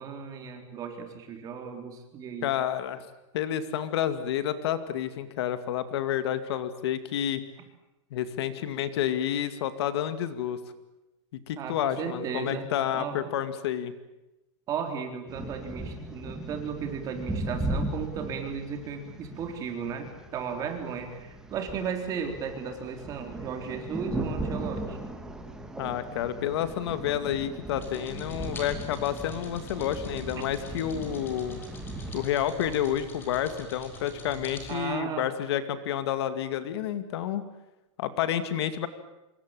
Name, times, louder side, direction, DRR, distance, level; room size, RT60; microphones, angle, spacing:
voice 1, 0.0-2.5 11.6-12.7 12.9-13.3 14.7-25.0 34.7-35.3, right 6 dB, 20° right, 5 dB, 3.9 m, -35 dB
voice 2, 2.4-3.0 3.3-7.4 8.1-10.6 11.5-13.9 25.8-31.6 32.1-37.4 38.0-38.9, left 10 dB, 55° left, 11 dB, 2.3 m, -29 dB
sound 1, 15.3-32.3, right 2 dB, 5° right, 2.1 m, -38 dB
sound 2, 27.7-34.8, equal, 15° left, 4.9 m, -44 dB
26.5 x 23.0 x 9.0 m, 0.98 s
supercardioid pair, 170°, 16 cm